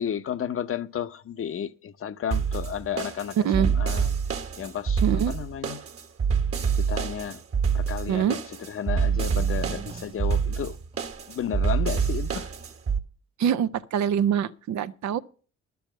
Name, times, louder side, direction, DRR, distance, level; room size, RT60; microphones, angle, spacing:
voice 1, 0.0-4.1 4.6-5.8 6.8-7.4 7.7-8.4 8.7-10.8 11.3-12.5, left 8 dB, 45° left, 0.8 m, -32 dB
sound 1, 2.3-13.0, right 6 dB, 50° right, 1.6 m, -26 dB
voice 2, 3.4-3.7 5.0-5.3 8.1-8.4 13.4-15.2, right 8 dB, 70° right, 0.7 m, -24 dB
sound 2, 8.9-11.7 12.0-12.1, right 4 dB, 20° right, 0.7 m, -43 dB
11.5 x 7.1 x 7.5 m
cardioid pair, 90°, 30 cm